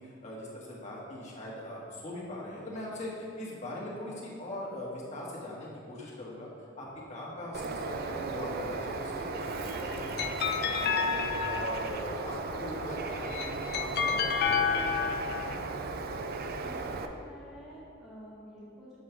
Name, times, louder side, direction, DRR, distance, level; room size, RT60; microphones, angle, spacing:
voice 1, 0.0-6.5 6.7-14.4, left 1 dB, 35° left, -5 dB, 1.4 m, -40 dB
Bird, 7.5-17.1, right 3 dB, 50° right, 0.4 m, -36 dB
sound 1, 9.5-12.1 13.1-15.5, left 6 dB, 50° left, 0.3 m, -30 dB
voice 2, 16.6-19.0, equal, ahead, -11 dB, 1.1 m, -49 dB
7.3 x 3.2 x 5.6 m, 2.7 s
head